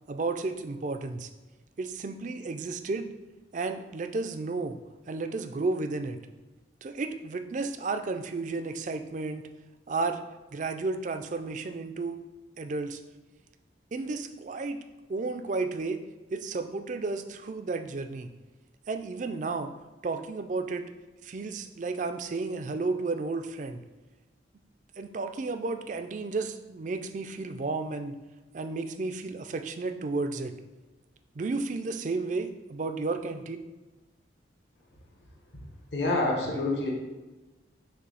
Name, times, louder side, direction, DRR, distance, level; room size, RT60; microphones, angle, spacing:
voice 1, 0.1-1.3 1.8-3.1 3.5-4.8 5.1-6.2 6.8-9.5 9.9-10.2 10.5-12.2 12.6-13.0 13.9-14.8 15.1-16.0 16.3-18.3 18.9-19.7 20.0-20.9 21.2-23.8 25.0-28.2 28.5-30.5 31.4-33.6, right 3 dB, 40° right, 8 dB, 0.4 m, -32 dB
voice 2, 35.9-36.9, left 2 dB, 65° left, -1 dB, 1.1 m, -27 dB
6.7 x 2.7 x 5.4 m, 1.2 s
head